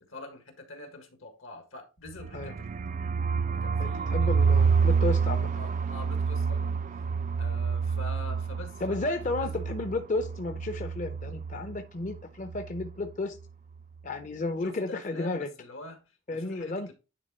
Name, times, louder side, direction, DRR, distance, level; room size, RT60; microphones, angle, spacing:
voice 1, 0.0-3.0 3.5-4.5 5.5-7.1 7.4-9.7 14.6-16.9, left 2 dB, 80° left, 1.7 m, -45 dB
sound 1, 2.1-11.8 12.1-12.2 12.5-12.9, right 5 dB, 40° right, 0.3 m, -28 dB
voice 2, 3.8-5.5 8.8-13.4 14.0-15.5 16.3-16.9, left 2 dB, 40° left, 0.6 m, -32 dB
9.8 x 3.5 x 4.2 m
head